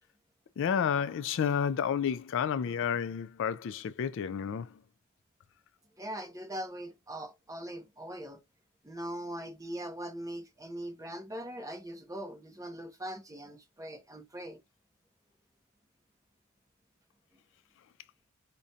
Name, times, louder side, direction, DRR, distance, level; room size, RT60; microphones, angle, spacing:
voice 1, 0.6-4.7, left 7 dB, 60° left, 0.3 m, -30 dB
voice 2, 6.0-8.4 8.8-14.6, right 1 dB, 15° right, 0.8 m, -41 dB
4.9 x 2.2 x 2.7 m
head